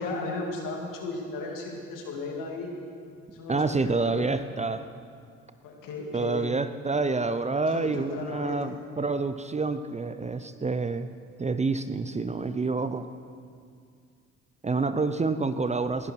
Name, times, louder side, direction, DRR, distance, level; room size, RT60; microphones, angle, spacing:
voice 1, 0.0-2.7 3.3-4.3 5.6-6.5 7.7-8.7, left 3 dB, 65° left, 0 dB, 2.8 m, -35 dB
voice 2, 3.5-4.8 6.1-11.1 11.4-13.1 14.6-16.1, right 3 dB, 20° right, 11 dB, 0.7 m, -28 dB
19.5 x 12.0 x 4.7 m, 2.2 s
hypercardioid pair, 55°, 35 cm